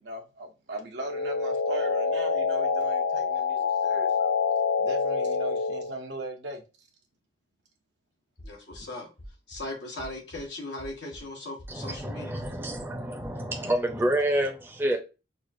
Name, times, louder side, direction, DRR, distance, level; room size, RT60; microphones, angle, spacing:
voice 1, 0.0-4.3 4.8-6.6, right 2 dB, 70° right, 0.7 m, -39 dB
sound 1, 1.0-6.0, left 5 dB, 90° left, 0.4 m, -26 dB
voice 2, 8.4-9.1 9.5-12.3, left 2 dB, 75° left, 1.1 m, -38 dB
sound 2, 8.4-8.9 9.2-9.7 10.0-10.5 10.8-11.3 11.6-12.1 12.4-12.9 13.2-13.3, equal, 55° left, 1.2 m, -45 dB
voice 3, 11.7-15.0, right 1 dB, 10° right, 0.6 m, -28 dB
4.5 x 2.4 x 2.6 m
head